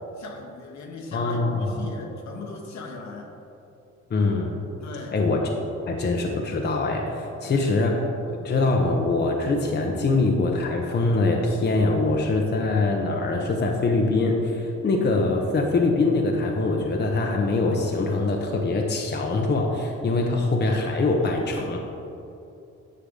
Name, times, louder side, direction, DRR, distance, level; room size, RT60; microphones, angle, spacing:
voice 1, 0.2-3.3 4.8-5.2 7.4-7.8, left 3 dB, 65° left, 1 dB, 1.3 m, -38 dB
voice 2, 1.1-1.9 4.1-4.6 5.1-5.5 5.9-8.1 8.4-21.8, left 3 dB, 35° left, 1 dB, 0.9 m, -23 dB
10.0 x 5.8 x 3.8 m, 2.8 s
cardioid pair, 90°, 30 cm